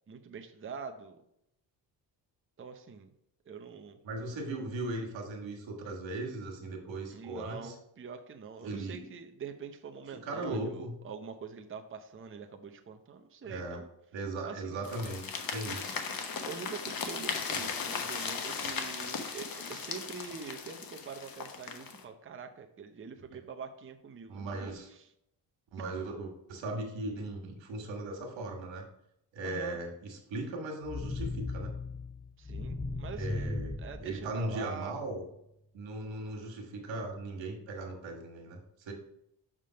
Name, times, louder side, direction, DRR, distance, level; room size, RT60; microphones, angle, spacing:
voice 1, 0.1-1.2 2.6-3.1 3.5-4.0 7.1-13.9 14.4-14.8 16.4-25.1 29.4-29.8 32.4-34.9, right 6 dB, 30° right, 5 dB, 0.7 m, -45 dB
voice 2, 4.0-7.7 8.6-9.0 10.1-10.9 13.4-13.8 14.1-16.0 24.3-24.9 25.7-28.8 29.3-31.7 33.1-33.7 34.0-35.2 35.7-38.9, right 2 dB, 90° right, 1 dB, 1.6 m, -38 dB
sound 1, 14.8-22.0, left 5 dB, 50° left, 1.1 m, -37 dB
sound 2, 30.8-34.9, left 2 dB, 5° left, 0.7 m, -37 dB
6.3 x 3.7 x 5.6 m, 0.79 s
cardioid pair, 75°, 44 cm